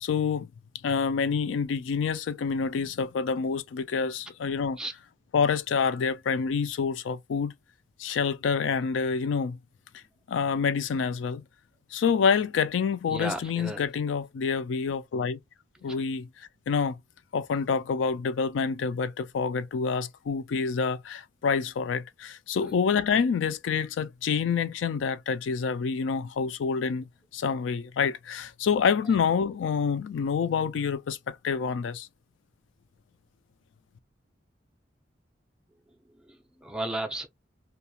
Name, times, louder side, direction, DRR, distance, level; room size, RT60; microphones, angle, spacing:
voice 1, 0.0-0.5 0.8-4.8 5.3-7.5 8.0-9.6 10.3-11.4 11.9-15.4 15.8-17.0 17.3-27.1 27.3-32.1, left 6 dB, 80° left, 0.4 m, -27 dB
voice 2, 13.1-13.8 15.8-15.9 22.6-22.7 36.1-37.3, right 1 dB, 5° right, 0.5 m, -35 dB
2.8 x 2.3 x 2.3 m
head